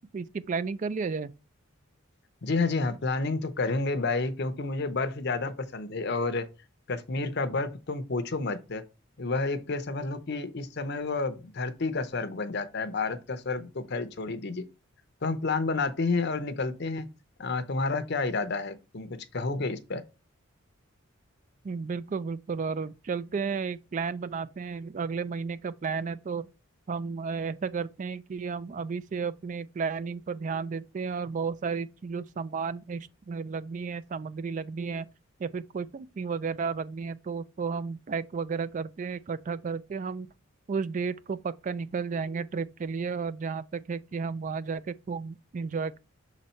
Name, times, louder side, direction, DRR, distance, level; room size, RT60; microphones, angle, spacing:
voice 1, 0.1-1.3 21.6-26.5 26.9-35.1 35.4-40.3 40.7-46.0, right 5 dB, 35° right, 0.3 m, -33 dB
voice 2, 2.4-6.5 6.9-8.8 9.2-14.6 15.2-17.1 17.4-20.0, left 3 dB, 50° left, 0.7 m, -30 dB
6.3 x 4.1 x 4.4 m
head